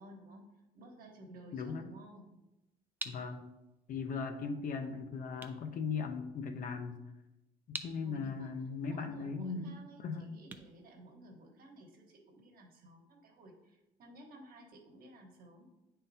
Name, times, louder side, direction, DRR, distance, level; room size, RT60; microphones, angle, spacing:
voice 1, 0.0-2.4 8.0-8.5 8.9-15.7, right 1 dB, 60° right, 2 dB, 1.2 m, -55 dB
voice 2, 1.5-1.8 3.0-3.5 3.9-7.0 7.7-10.3, left 5 dB, 55° left, 6 dB, 0.7 m, -38 dB
sound 1, 2.8-11.8, right 2 dB, 10° right, 0.4 m, -50 dB
9.0 x 3.8 x 2.7 m, 0.96 s
cardioid pair, 110°, 17 cm